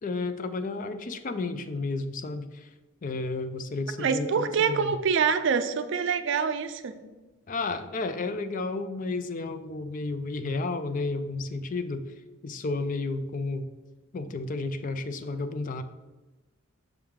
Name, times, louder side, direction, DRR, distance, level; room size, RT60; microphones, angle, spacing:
voice 1, 0.0-2.7 3.0-5.0 7.5-12.0 12.4-13.7 14.1-15.8, left 3 dB, 40° left, 10 dB, 0.4 m, -32 dB
voice 2, 4.0-7.0, right 6 dB, 60° right, 10 dB, 0.4 m, -25 dB
6.1 x 4.7 x 3.6 m, 1.2 s
head